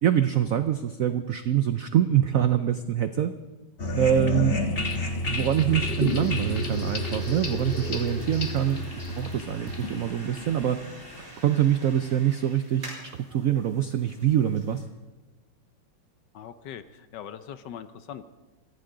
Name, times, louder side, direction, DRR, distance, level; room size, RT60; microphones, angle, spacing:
voice 1, 0.0-3.3 4.0-4.6 5.3-8.9 9.2-10.8 11.4-14.8, right 10 dB, 75° right, 10 dB, 0.7 m, -24 dB
sound 1, 3.8-11.3, left 2 dB, 35° left, 1.4 m, -30 dB
sound 2, 4.8-14.8, right 1 dB, 40° right, 6.4 m, -47 dB
voice 2, 16.3-18.2, left 9 dB, 70° left, 12 dB, 1.2 m, -41 dB
23.0 x 15.5 x 3.9 m, 1.2 s
omnidirectional pair, 2.2 m